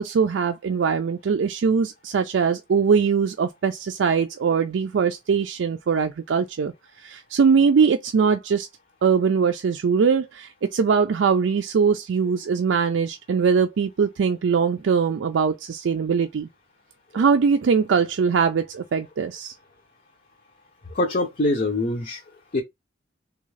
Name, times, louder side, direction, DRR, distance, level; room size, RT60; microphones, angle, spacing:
voice 1, 0.0-6.7 7.0-8.7 9.0-16.5 17.1-19.5, right 6 dB, 85° right, 0.4 m, -21 dB
voice 2, 20.9-22.2 22.5-22.6, left 2 dB, 45° left, 0.6 m, -23 dB
3.5 x 2.3 x 3.2 m
head